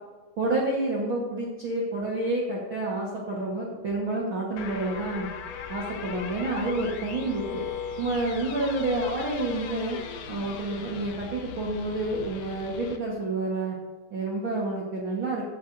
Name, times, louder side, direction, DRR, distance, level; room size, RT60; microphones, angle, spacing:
voice 1, 0.4-5.3 5.7-7.6 8.0-10.0 10.3-13.8 14.1-15.5, right 2 dB, 55° right, -4 dB, 1.4 m, -29 dB
sound 1, 4.6-13.0, left 7 dB, 90° left, 1.4 m, -38 dB
16.0 x 8.7 x 2.6 m, 1.3 s
omnidirectional pair, 4.1 m